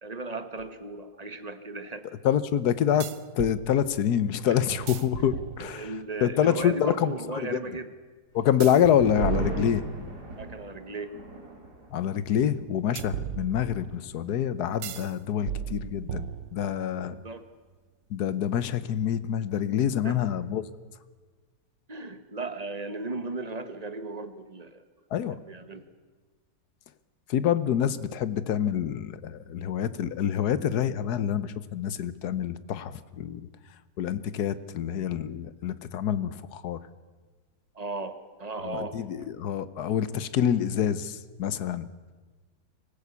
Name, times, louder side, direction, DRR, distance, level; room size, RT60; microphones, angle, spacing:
voice 1, 0.0-2.1 4.5-4.6 5.2-5.3 5.6-7.9 10.3-11.2 16.9-17.5 20.0-20.3 21.9-24.8 25.2-25.9 37.7-39.0, right 3 dB, 25° right, 10 dB, 1.1 m, -36 dB
sound 1, 0.6-0.7 3.0-3.6 4.7-6.0 8.6-10.3 13.0-14.0 14.8-15.1 15.5-16.8, right 9 dB, 85° right, 1.5 m, -35 dB
voice 2, 2.2-3.1 3.3-5.9 6.2-7.1 7.4-7.6 8.3-9.8 11.9-17.2 18.1-20.6 25.1-25.3 27.3-33.5 34.0-36.8 38.6-41.8, left 9 dB, 65° left, 15 dB, 1.4 m, -26 dB
sound 2, 8.4-15.3 15.6-15.7 16.1-16.6, right 2 dB, 60° right, 3.5 m, -40 dB
24.5 x 15.5 x 8.3 m, 1.4 s
omnidirectional pair, 1.9 m